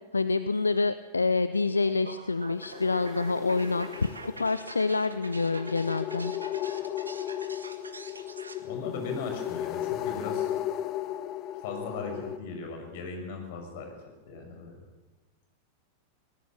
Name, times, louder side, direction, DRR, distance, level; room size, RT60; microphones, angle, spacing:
voice 1, 0.1-6.3, left 3 dB, 80° left, 14 dB, 0.6 m, -27 dB
sound 1, 1.6-8.6, right 3 dB, 80° right, 2.0 m, -45 dB
sound 2, 2.5-12.4, left 12 dB, 35° left, 0.9 m, -35 dB
voice 2, 8.6-10.5 11.6-14.0 14.2-14.8, left 4 dB, 50° left, 4 dB, 6.4 m, -38 dB
21.0 x 19.5 x 7.4 m, 1.3 s
figure-of-eight pair, 90°, 0 cm